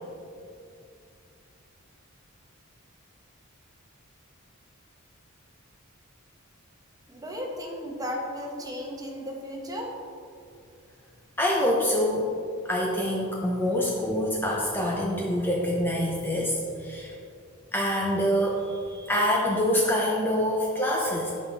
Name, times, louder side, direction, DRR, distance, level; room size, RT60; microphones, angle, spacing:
voice 1, 7.1-9.9, equal, 15° right, 0 dB, 1.1 m, -35 dB
voice 2, 11.4-12.3 12.6-17.1 17.7-21.3, equal, 10° left, -3 dB, 0.7 m, -26 dB
9.2 x 5.7 x 4.0 m, 2.4 s
head